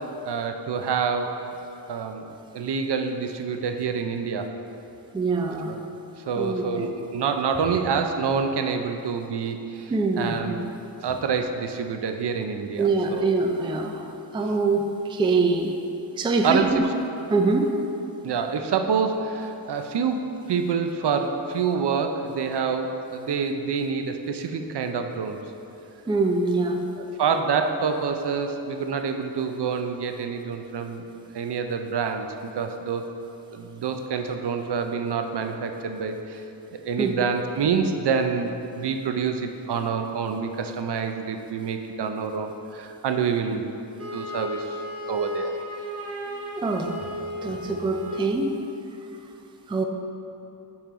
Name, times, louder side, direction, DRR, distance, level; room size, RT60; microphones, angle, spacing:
voice 1, 0.2-1.4 1.9-2.3 2.5-4.5 5.7-5.8 6.3-10.6 11.0-13.3 16.4-16.9 18.2-25.4 27.0-31.0 31.3-32.3 32.6-33.1 33.5-36.4 36.7-43.7 44.1-44.8 45.1-45.6, right 6 dB, 70° right, 6 dB, 0.5 m, -27 dB
voice 2, 5.1-5.8 6.4-6.9 9.9-10.7 12.8-14.0 14.3-14.8 15.1-15.8 16.2-16.8 17.3-17.7 26.1-26.9 37.0-37.1 46.6-46.9 47.4-48.6 49.7-49.8, right 3 dB, 15° right, 4 dB, 0.3 m, -24 dB
Wind instrument woodwind instrument, 44.0-48.4, equal, 35° right, 0.9 m, -34 dB
5.5 x 4.5 x 5.0 m, 2.8 s
wide cardioid pair, 110°, 43 cm